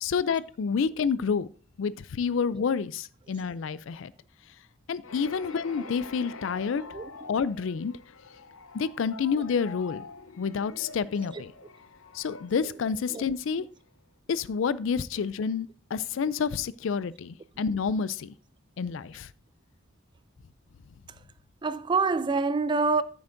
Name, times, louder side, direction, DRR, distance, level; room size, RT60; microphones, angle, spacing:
voice 1, 0.0-1.5 1.8-4.1 4.9-6.8 7.3-7.9 8.7-10.1 10.4-11.5 12.1-13.6 14.3-18.3 18.8-19.3, left 6 dB, 65° left, 0.4 m, -29 dB
smashing piano jump scare, 5.0-13.8, left 4 dB, 90° left, 0.8 m, -46 dB
voice 2, 6.9-7.4 9.3-9.4 11.3-11.4 13.1-13.2 21.6-23.0, right 4 dB, 25° right, 0.3 m, -27 dB
13.5 x 7.1 x 2.6 m
head